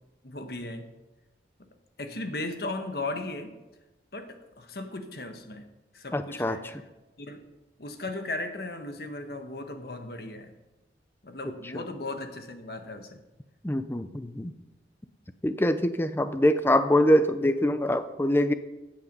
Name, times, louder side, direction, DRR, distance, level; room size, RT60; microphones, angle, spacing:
voice 1, 0.2-0.9 2.0-3.5 4.1-5.7 5.9-6.9 7.2-7.4 7.8-10.5 11.2-13.2, left 2 dB, 60° left, 6 dB, 1.4 m, -36 dB
voice 2, 6.1-6.6 13.6-14.5 15.4-18.5, left 1 dB, 15° left, 11 dB, 0.6 m, -24 dB
15.5 x 8.6 x 5.4 m, 1.1 s
head